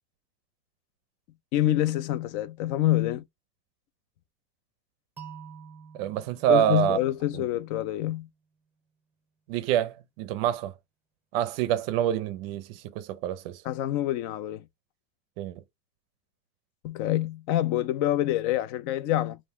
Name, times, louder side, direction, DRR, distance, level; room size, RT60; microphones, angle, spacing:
voice 1, 1.5-3.2 6.5-8.3 13.6-14.6 16.8-19.4, left 13 dB, 45° left, 0.4 m, -26 dB
sound 1, 5.2-8.1, right 6 dB, 5° right, 0.9 m, -48 dB
voice 2, 6.0-7.0 7.3-7.4 9.5-10.7 11.3-13.6 15.4-15.6, right 11 dB, 55° right, 0.5 m, -26 dB
4.2 x 2.6 x 3.5 m
cardioid pair, 175°, 35 cm